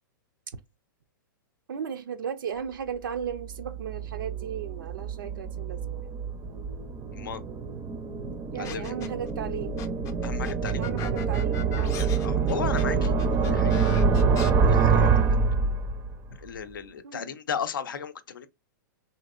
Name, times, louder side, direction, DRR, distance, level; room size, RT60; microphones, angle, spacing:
voice 1, 1.7-6.1 8.5-9.7 10.8-12.0 17.0-17.3, right 8 dB, 80° right, 0.4 m, -36 dB
sound 1, 3.3-16.3, right 5 dB, 25° right, 0.4 m, -26 dB
voice 2, 8.5-8.9 10.2-10.8 12.0-13.1 13.4-13.8 14.5-15.4 16.4-18.5, left 7 dB, 85° left, 0.5 m, -35 dB
sound 2, 8.6-9.3 9.8-14.5, left 9 dB, 30° left, 0.5 m, -40 dB
3.1 x 2.7 x 2.3 m
hypercardioid pair, 125°, 11 cm